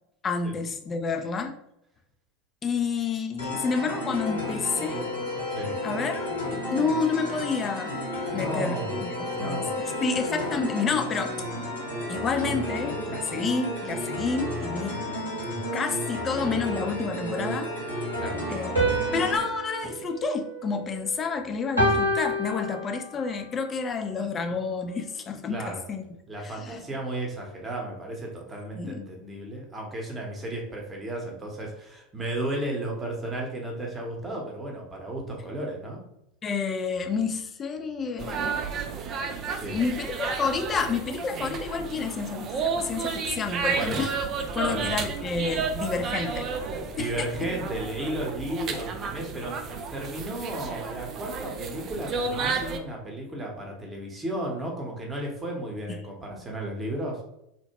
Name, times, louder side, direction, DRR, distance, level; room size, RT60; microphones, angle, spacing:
voice 1, 0.2-1.6 2.6-5.1 5.8-8.0 8.3-11.7 12.1-15.0 15.7-17.7 18.5-18.7 19.1-26.0 26.4-26.8 28.8-29.0 36.4-38.6 39.5-44.3 44.5-46.5 47.0-47.3, left 5 dB, 30° left, 5 dB, 0.4 m, -29 dB
sound 1, 3.4-19.4, left 1 dB, 90° left, 1.0 m, -32 dB
voice 2, 8.3-8.9 9.3-9.9 10.2-10.3 15.5-15.6 18.2-18.4 25.5-25.8 26.3-36.0 39.6-39.8 43.7-44.0 44.7-44.9 46.9-57.2, right 1 dB, 20° right, 0 dB, 0.9 m, -34 dB
sound 2, 18.8-21.2 21.8-23.3, right 1 dB, 85° right, 0.8 m, -28 dB
sound 3, 38.2-52.8, right 5 dB, 40° right, 0.3 m, -32 dB
2.8 x 2.1 x 2.8 m, 0.81 s
figure-of-eight pair, 80°, 0 cm